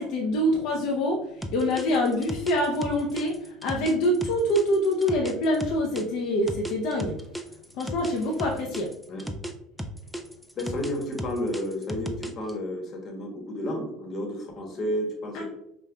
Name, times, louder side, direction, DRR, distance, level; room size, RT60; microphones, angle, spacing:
voice 1, 0.0-7.2 7.7-8.9 15.3-15.4, left 1 dB, 65° left, 0 dB, 0.5 m, -25 dB
sound 1, 1.4-6.0 6.5-9.5 9.8-12.5, equal, ahead, 0.3 m, -35 dB
voice 2, 10.5-15.4, equal, 40° left, 1 dB, 1.0 m, -31 dB
5.0 x 2.2 x 2.2 m, 0.80 s
supercardioid pair, 110°, 0 cm